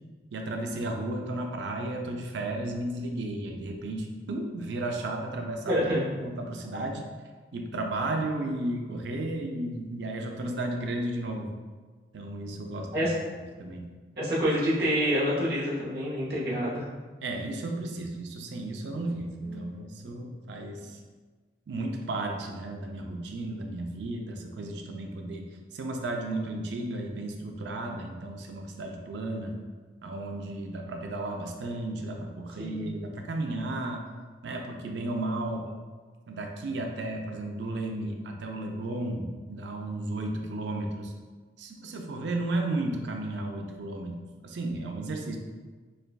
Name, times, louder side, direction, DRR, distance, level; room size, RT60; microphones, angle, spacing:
voice 1, 0.3-5.8 6.2-7.1 7.5-11.5 12.1-13.1 13.6-13.9 17.2-21.0 21.7-25.5 25.7-29.5 30.0-34.0 34.4-35.7 36.3-41.1 41.6-45.4, right 2 dB, 75° right, 2 dB, 0.4 m, -33 dB
voice 2, 5.7-6.0 12.9-13.1 14.2-16.9 19.5-19.7 32.6-32.9, equal, 55° right, -7 dB, 0.9 m, -27 dB
6.4 x 2.2 x 2.2 m, 1.4 s
head